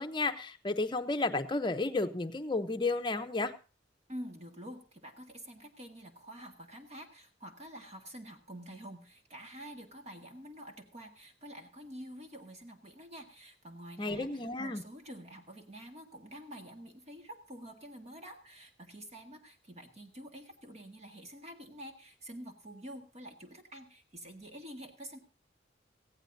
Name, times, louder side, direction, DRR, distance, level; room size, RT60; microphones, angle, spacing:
voice 1, 0.0-3.5 14.0-14.8, left 3 dB, 25° left, 7 dB, 0.8 m, -32 dB
voice 2, 4.1-25.2, equal, 35° right, 4 dB, 1.8 m, -48 dB
18.5 x 15.0 x 2.7 m, 0.36 s
head